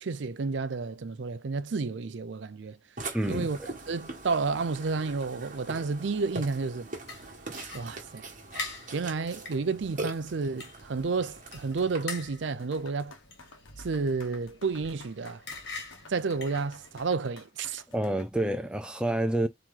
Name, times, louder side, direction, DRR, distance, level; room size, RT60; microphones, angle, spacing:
voice 1, 0.0-2.8 3.3-3.6 3.9-6.9 7.7-8.3 8.9-13.1 13.8-15.4 16.1-17.8, right 4 dB, 65° right, 0.5 m, -31 dB
Burping eructation, 3.0-12.0, right 2 dB, 40° right, 1.4 m, -42 dB
voice 2, 3.1-3.7 17.9-19.5, right 1 dB, 5° right, 0.4 m, -28 dB
sound 1, 7.1-17.1, left 3 dB, 55° left, 1.5 m, -45 dB
sound 2, 12.4-18.3, left 3 dB, 85° left, 1.1 m, -52 dB
4.4 x 3.1 x 3.7 m
head